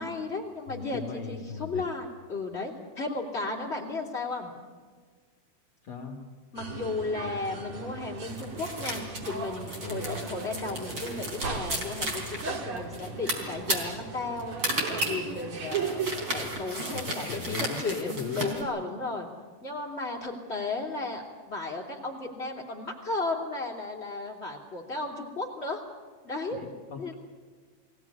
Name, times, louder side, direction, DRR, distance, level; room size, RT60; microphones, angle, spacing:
voice 1, 0.0-4.5 6.5-19.3 19.6-25.8 26.2-26.6 27.0-27.1, left 3 dB, 20° left, -1 dB, 2.1 m, -34 dB
voice 2, 0.7-1.8 5.8-6.2 9.8-10.2 16.9-18.6 26.5-27.1, left 5 dB, 70° left, 2 dB, 1.2 m, -38 dB
sound 1, 6.6-16.7, right 4 dB, 60° right, 1.5 m, -37 dB
sound 2, 8.2-18.6, right 1 dB, 25° right, 3.7 m, -34 dB
23.5 x 16.5 x 9.9 m, 1.5 s
omnidirectional pair, 5.5 m